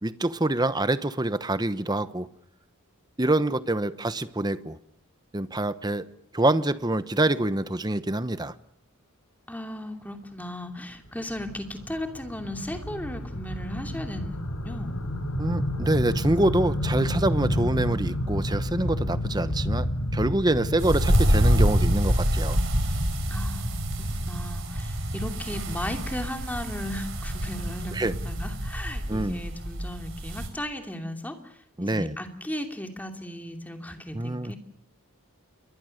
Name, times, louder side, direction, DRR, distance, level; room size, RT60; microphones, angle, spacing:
voice 1, 0.0-2.3 3.2-4.8 5.3-6.0 6.3-8.5 15.4-22.6 27.9-28.1 29.1-29.4 31.8-32.2 34.1-34.5, right 1 dB, 20° right, 13 dB, 1.0 m, -26 dB
voice 2, 9.5-15.0 23.3-34.6, left 1 dB, 5° left, 4 dB, 2.8 m, -36 dB
sound 1, 11.1-21.9, equal, 90° left, 5.2 m, -30 dB
sound 2, 20.8-30.5, equal, 60° right, 5.3 m, -26 dB
28.5 x 23.5 x 6.6 m, 0.70 s
head